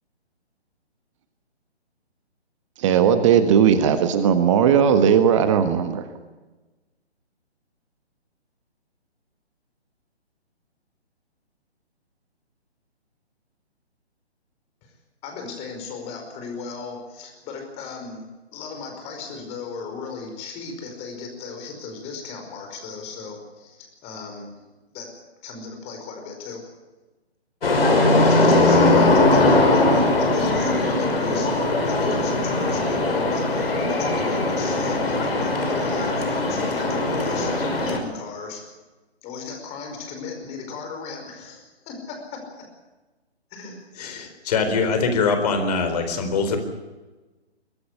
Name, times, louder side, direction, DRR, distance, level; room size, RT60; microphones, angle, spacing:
voice 1, 2.8-6.0, right 8 dB, 30° right, 9 dB, 1.5 m, -17 dB
voice 2, 15.2-24.6 24.9-25.1 25.4-26.6 28.0-38.6 39.2-42.6 43.5-43.8, left 5 dB, 20° left, 3 dB, 5.0 m, -36 dB
sound 1, 27.6-38.0, left 2 dB, 60° left, 5.5 m, -20 dB
voice 3, 44.0-46.6, left 4 dB, 35° left, 7 dB, 4.2 m, -23 dB
23.5 x 13.5 x 9.7 m, 1.2 s
figure-of-eight pair, 140°, 33 cm